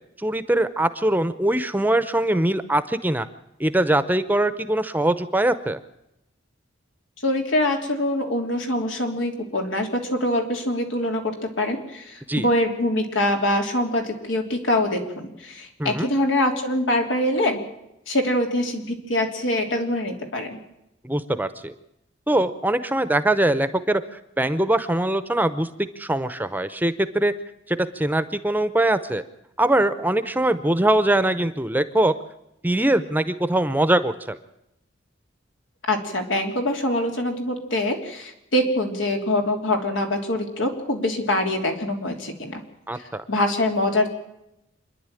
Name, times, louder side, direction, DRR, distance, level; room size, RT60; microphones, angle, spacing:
voice 1, 0.2-3.3 3.6-5.8 12.3-12.5 15.8-16.1 21.0-21.7 22.3-25.7 26.0-27.3 27.7-29.2 29.6-32.2 32.6-34.4 42.9-43.2, right 1 dB, 10° right, 12 dB, 0.8 m, -22 dB
voice 2, 7.2-17.6 18.1-20.6 35.9-42.6 42.9-44.1, left 1 dB, 90° left, 3 dB, 3.2 m, -24 dB
26.5 x 10.5 x 9.1 m, 0.86 s
head